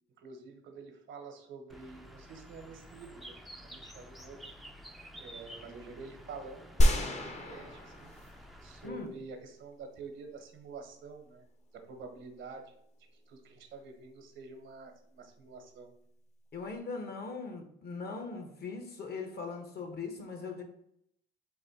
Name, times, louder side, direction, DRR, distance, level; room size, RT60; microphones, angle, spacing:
voice 1, 0.2-4.4 5.2-8.1 8.6-11.4 11.7-12.7 13.3-15.9, right 4 dB, 75° right, 5 dB, 0.9 m, -48 dB
Bird, 1.7-8.9, equal, ahead, 0.4 m, -51 dB
sound 1, 6.8-8.6 9.1-9.2, equal, 35° left, 0.7 m, -28 dB
voice 2, 16.5-20.6, left 4 dB, 55° left, 5 dB, 1.0 m, -40 dB
4.1 x 2.6 x 4.0 m, 0.73 s
cardioid pair, 90°, 20 cm